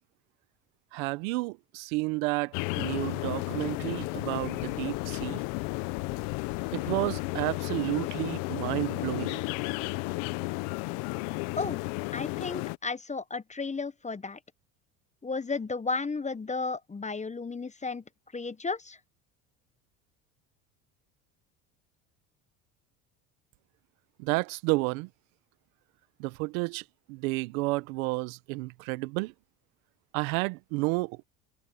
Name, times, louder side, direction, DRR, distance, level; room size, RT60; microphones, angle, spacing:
voice 1, 0.9-5.4 6.7-9.4 24.2-25.1 26.2-26.8 27.1-29.3 30.1-31.2, right 24 dB, 80° right, 1.5 m, -31 dB
sound 1, 2.5-12.8, left 25 dB, 75° left, 1.3 m, -33 dB
voice 2, 12.1-14.4 15.2-18.0 18.3-19.0, left 4 dB, 15° left, 1.0 m, -33 dB
hypercardioid pair, 75°, 41 cm